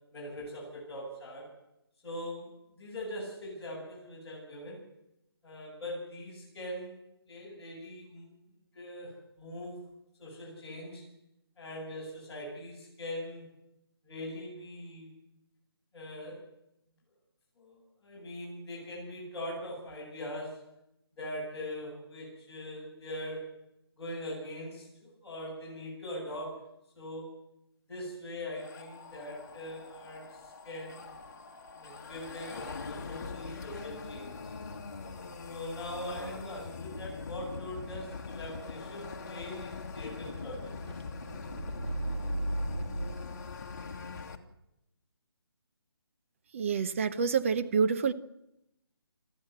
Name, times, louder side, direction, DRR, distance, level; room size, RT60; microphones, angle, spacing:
voice 1, 0.1-1.5 2.0-4.8 5.4-7.0 7.3-8.3 8.7-9.8 10.2-11.0 11.6-13.5 14.0-15.2 15.9-16.4 17.6-20.6 21.2-23.6 24.0-26.7 26.9-27.4 27.9-31.1 31.8-34.5 35.5-40.8, left 1 dB, 5° left, 7.2 m, -42 dB
sound 1, 28.6-44.4, left 4 dB, 40° left, 1.9 m, -42 dB
sound 2, 34.2-43.2, right 1 dB, 85° right, 3.4 m, -41 dB
voice 2, 46.5-48.1, right 6 dB, 30° right, 0.8 m, -27 dB
25.0 x 14.5 x 8.0 m
figure-of-eight pair, 165°, 14 cm